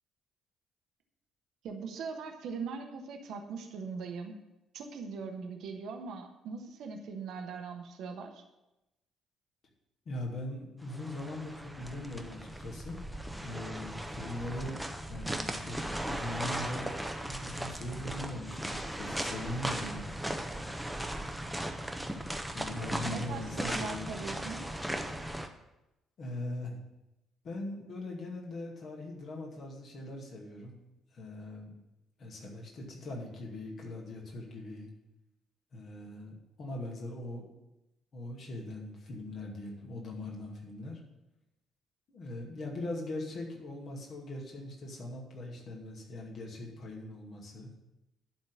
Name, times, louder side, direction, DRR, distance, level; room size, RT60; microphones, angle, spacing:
voice 1, 1.6-4.4 4.7-8.4 23.0-24.6, right 5 dB, 55° right, 4 dB, 1.1 m, -40 dB
voice 2, 10.1-13.0 13.4-14.8 15.1-15.8 16.1-20.0 22.5-24.1 26.2-26.8 27.4-30.8 31.1-31.7 32.2-34.9 35.7-37.5 38.1-41.0 42.1-47.7, left 1 dB, 50° left, -1 dB, 2.3 m, -41 dB
sound 1, 10.9-25.5, right 1 dB, 5° right, 1.0 m, -37 dB
11.0 x 4.4 x 8.1 m, 0.93 s
figure-of-eight pair, 45°, 0 cm